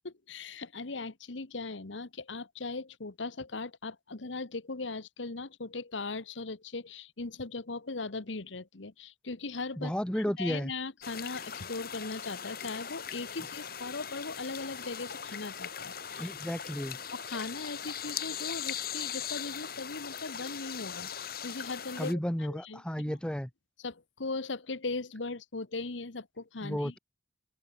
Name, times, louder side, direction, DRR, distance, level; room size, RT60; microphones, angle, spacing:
voice 1, 0.0-16.3 17.1-22.8 23.8-26.9, left 3 dB, 85° left, 1.3 m, -39 dB
voice 2, 9.8-10.7 16.2-17.0 22.0-23.5 26.6-27.0, equal, 5° left, 0.9 m, -33 dB
sound 1, 11.0-22.1, left 8 dB, 55° left, 4.4 m, -40 dB
open air
head